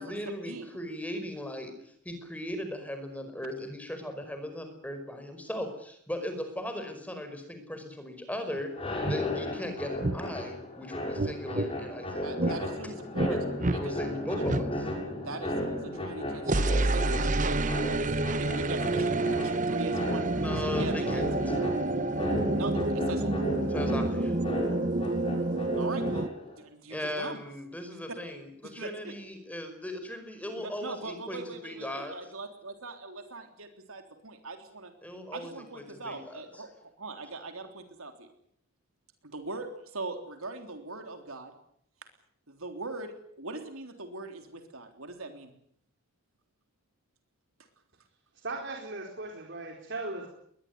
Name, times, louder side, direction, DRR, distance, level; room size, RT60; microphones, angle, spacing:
voice 1, 0.0-8.7 9.1-12.9 13.2-13.5 13.7-14.9 20.4-21.5 23.7-24.4 26.9-32.2 35.0-36.7, left 1 dB, 5° left, 7 dB, 5.0 m, -38 dB
sound 1, 8.6-8.7 9.0-9.2 10.0-10.2 11.2-11.7 12.4-12.6 13.1-13.3 13.6-13.8 14.5-14.6 16.4-26.3, right 2 dB, 35° right, 1.0 m, -28 dB
sound 2, 8.7-26.6, left 1 dB, 25° left, 7.0 m, -35 dB
voice 2, 12.2-13.4 13.7-13.9 14.3-14.4 15.2-18.0 18.3-21.6 22.5-23.4 25.7-26.3 26.6-27.4 28.6-29.1 30.6-34.9 35.3-38.3 39.2-41.5 42.5-45.5, right 2 dB, 80° right, 6 dB, 3.6 m, -41 dB
voice 3, 48.4-50.3, right 2 dB, 55° right, 1 dB, 4.4 m, -37 dB
22.0 x 20.0 x 9.6 m, 0.69 s
head